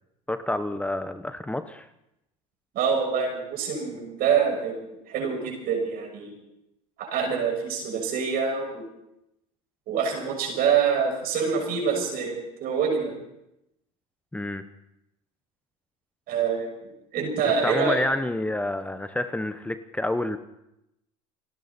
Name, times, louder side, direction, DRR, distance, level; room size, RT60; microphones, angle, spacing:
voice 1, 0.3-1.9 14.3-14.6 17.6-20.4, left 1 dB, 10° left, 10 dB, 1.0 m, -28 dB
voice 2, 2.7-6.3 7.0-8.8 9.9-13.1 16.3-16.7 17.1-18.0, right 6 dB, 60° right, 1 dB, 6.4 m, -26 dB
30.0 x 11.0 x 4.3 m, 0.85 s
supercardioid pair, 90°, 18 cm